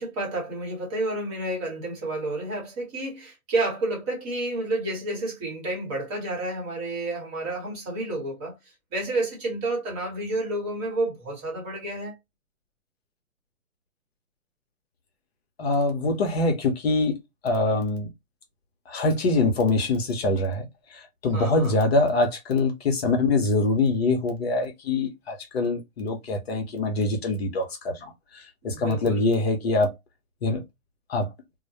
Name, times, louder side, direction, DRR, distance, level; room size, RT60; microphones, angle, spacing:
voice 1, 0.0-8.6 8.9-12.2 21.3-21.8 28.6-29.3, right 2 dB, 25° right, 1.0 m, -30 dB
voice 2, 15.6-18.1 18.9-29.9 30.4-30.6 31.1-31.3, left 2 dB, 45° left, 0.7 m, -24 dB
2.2 x 2.1 x 2.8 m
hypercardioid pair, 140°, 43 cm